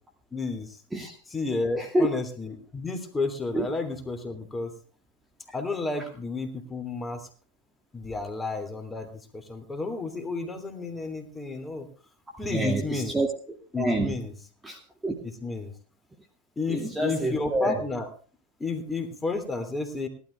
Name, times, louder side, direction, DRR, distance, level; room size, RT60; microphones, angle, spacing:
voice 1, 0.3-0.8 1.3-4.7 5.5-7.3 7.9-11.9 12.4-13.2 13.7-14.3 15.4-15.7 16.6-18.1 18.6-20.1, left 3 dB, 15° left, 6 dB, 3.2 m, -31 dB
voice 2, 1.8-2.1 3.5-3.7 12.5-14.1 14.6-15.2 16.7-17.8, right 1 dB, 10° right, 3 dB, 2.3 m, -28 dB
18.5 x 12.5 x 3.4 m, 0.38 s
hypercardioid pair, 105°, 0 cm